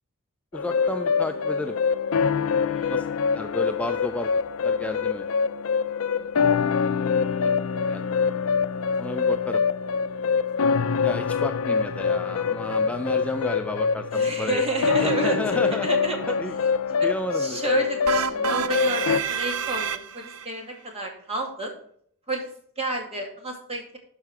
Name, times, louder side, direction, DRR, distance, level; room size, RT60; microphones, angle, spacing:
sound 1, 0.5-19.2, left 6 dB, 65° left, 0.5 m, -25 dB
voice 1, 0.5-1.8 2.9-3.1 3.3-5.3 6.2-6.9 7.4-8.3 9.0-9.6 11.0-14.6 15.0-15.9 16.3-16.6 17.0-17.9, left 1 dB, 5° left, 7 dB, 0.4 m, -33 dB
voice 2, 2.6-2.9 14.1-15.4 15.8-16.1 16.9-17.1 17.3-21.8 22.3-22.5 22.8-24.0, right 2 dB, 30° right, 2 dB, 2.4 m, -31 dB
sound 2, 18.1-20.5, right 7 dB, 70° right, 0.6 m, -28 dB
12.0 x 4.9 x 4.7 m, 0.62 s
head